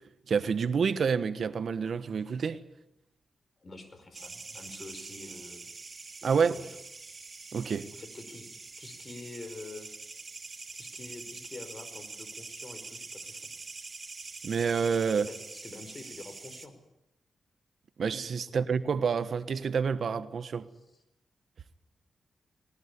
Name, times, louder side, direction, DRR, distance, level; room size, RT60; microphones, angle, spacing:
voice 1, 0.3-2.6 6.2-6.5 7.5-7.9 14.4-15.3 18.0-20.7, right 6 dB, 65° right, 1.2 m, -28 dB
voice 2, 3.6-5.7 6.2-6.7 7.9-8.5 8.8-9.9 10.8-13.5 15.1-16.7 20.7-21.0, left 3 dB, 40° left, 5.1 m, -46 dB
sound 1, 4.1-16.7, right 3 dB, 35° right, 2.5 m, -45 dB
20.5 x 19.5 x 9.8 m
cardioid pair, 75°, 0 cm